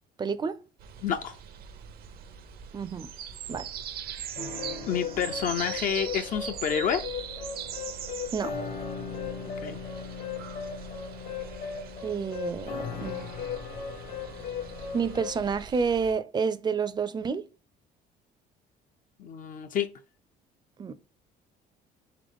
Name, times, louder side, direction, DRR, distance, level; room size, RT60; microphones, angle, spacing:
voice 1, 0.2-0.6 2.7-3.1 3.5-3.7 8.3-8.5 12.0-13.3 14.9-17.4 20.8-20.9, right 5 dB, 25° right, 0.5 m, -29 dB
sound 1, 0.8-16.1, right 8 dB, 65° right, 0.7 m, -42 dB
voice 2, 1.0-1.4 4.9-7.0 9.4-9.8 19.2-19.9, left 8 dB, 55° left, 0.5 m, -29 dB
sound 2, 4.4-15.3, left 6 dB, 75° left, 1.4 m, -37 dB
3.8 x 3.2 x 3.5 m
cardioid pair, 110°, 17 cm